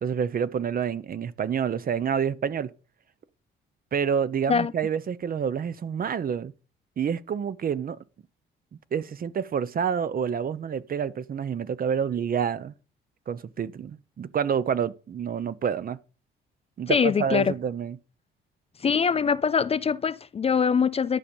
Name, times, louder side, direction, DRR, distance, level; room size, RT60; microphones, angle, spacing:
voice 1, 0.0-2.7 3.9-6.5 7.0-8.0 8.9-12.7 13.3-16.0 16.8-18.0, right 7 dB, 45° right, 0.8 m, -28 dB
voice 2, 16.9-17.5 18.8-21.2, left 6 dB, 30° left, 0.4 m, -23 dB
11.5 x 5.2 x 7.1 m
cardioid pair, 90°, 20 cm